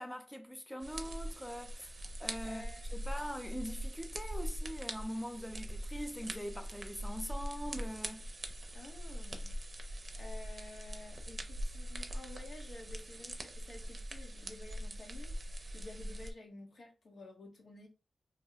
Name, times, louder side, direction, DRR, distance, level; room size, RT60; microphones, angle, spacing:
voice 1, 0.0-2.6 2.9-8.3, equal, 5° left, 0.5 m, -42 dB
sound 1, 0.8-16.3, equal, 50° right, 0.5 m, -42 dB
voice 2, 2.4-3.0 8.7-17.9, left 2 dB, 80° left, 1.0 m, -52 dB
2.7 x 2.2 x 4.0 m
cardioid pair, 65°, 0 cm